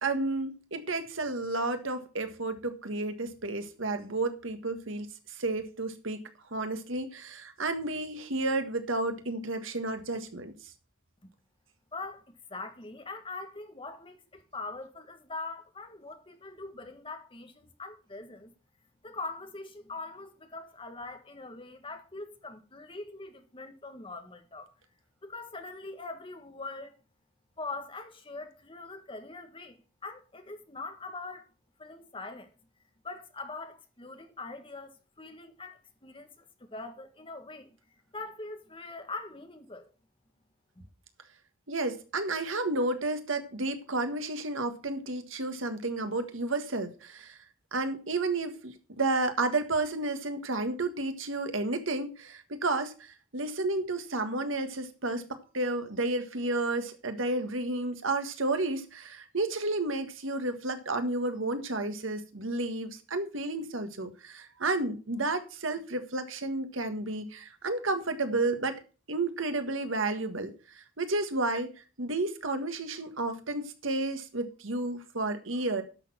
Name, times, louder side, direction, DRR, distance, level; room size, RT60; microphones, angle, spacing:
voice 1, 0.0-6.2 6.5-10.5 41.7-47.4 47.7-68.8 69.1-75.8, right 2 dB, 70° right, 1.6 m, -31 dB
voice 2, 11.9-12.2 12.5-18.5 19.0-24.7 25.2-26.9 27.6-31.5 31.8-32.5 33.0-37.7 38.1-39.9, left 3 dB, 25° left, 1.6 m, -42 dB
10.5 x 6.8 x 5.8 m
head